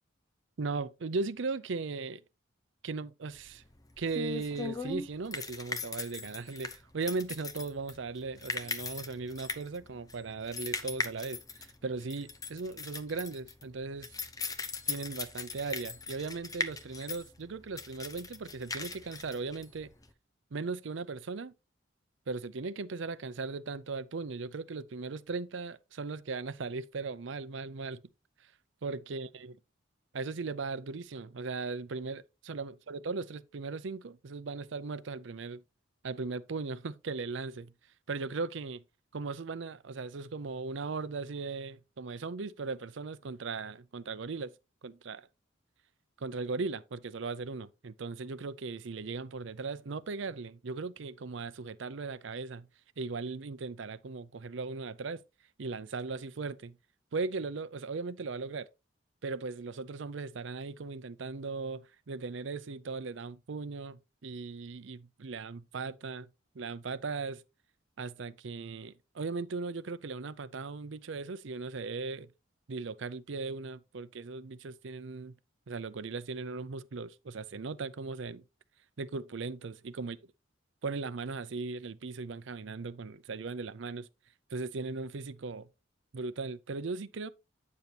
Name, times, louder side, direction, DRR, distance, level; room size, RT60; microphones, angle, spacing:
voice 1, 0.6-2.2 2.8-3.6 4.0-14.2 14.9-19.9 20.5-21.5 22.3-28.0 28.8-29.5 30.1-35.6 36.0-37.7 38.1-38.8 39.1-44.5 44.8-45.3 46.2-52.7 53.0-55.2 55.6-56.8 57.1-58.7 59.2-66.3 66.5-67.4 68.0-72.3 72.7-75.3 75.7-78.4 79.0-80.2 80.8-84.1 84.5-85.7 86.1-87.3, right 4 dB, 70° right, 0.6 m, -38 dB
sound 1, 3.4-20.1, left 4 dB, 20° left, 0.8 m, -39 dB
9.4 x 6.9 x 2.9 m
head